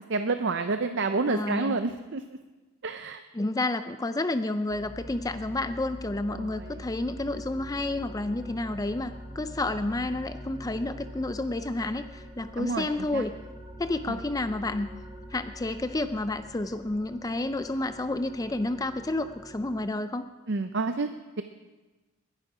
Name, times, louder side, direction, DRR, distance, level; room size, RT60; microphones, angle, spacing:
voice 1, 0.1-2.2 2.8-3.2 6.3-6.7 12.6-12.9 13.1-13.2 14.1-14.2 20.5-21.4, right 3 dB, 50° right, 8 dB, 0.6 m, -29 dB
voice 2, 1.3-1.8 3.3-13.3 13.8-14.9 15.3-20.3, left 2 dB, 15° left, 11 dB, 0.4 m, -30 dB
sound 1, 4.7-19.9, equal, 20° right, 1.6 m, -44 dB
21.0 x 11.0 x 4.9 m, 1.2 s
head